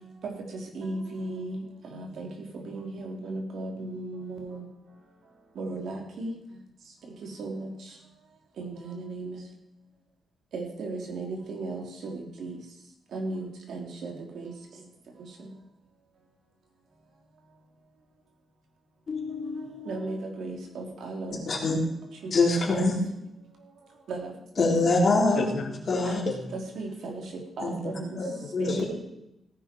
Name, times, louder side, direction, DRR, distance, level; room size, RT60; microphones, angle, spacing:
voice 1, 0.8-1.6 1.9-2.3 2.7-4.6 5.6-6.3 7.4-7.7 8.6-9.4 10.5-12.6 13.1-14.5 19.9-21.4 22.2-22.3 22.7-22.8 24.1-24.3 24.6-24.8 26.1-26.3 26.5-27.2 27.6-28.2 28.6-28.8, right 2 dB, 75° right, 1 dB, 3.5 m, -35 dB
voice 2, 19.1-19.9 21.5-21.8 22.3-22.9 24.6-25.5 25.9-26.2 27.6-28.7, left 3 dB, 40° left, -1 dB, 3.8 m, -25 dB
voice 3, 25.4-26.5 28.4-28.9, left 5 dB, 55° left, 5 dB, 1.6 m, -34 dB
17.0 x 10.5 x 4.6 m, 0.84 s
wide cardioid pair, 140°, 0 cm